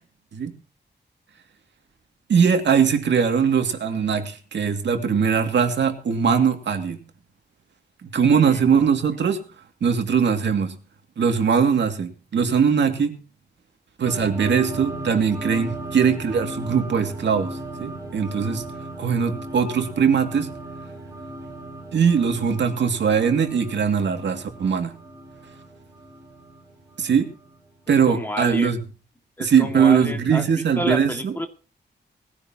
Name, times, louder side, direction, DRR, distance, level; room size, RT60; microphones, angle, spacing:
voice 1, 2.3-7.0 8.0-9.4 9.8-10.8 11.2-13.2 14.0-18.6 19.0-20.5 21.9-25.0 27.0-27.3 27.9-28.8 29.4-31.4, right 6 dB, 90° right, 5 dB, 2.4 m, -21 dB
sound 1, 14.0-28.0, right 1 dB, 20° right, 4.8 m, -37 dB
voice 2, 28.1-28.8 29.4-31.5, left 1 dB, 10° left, 5 dB, 2.1 m, -30 dB
20.5 x 15.5 x 2.9 m, 0.36 s
wide cardioid pair, 155°, 18 cm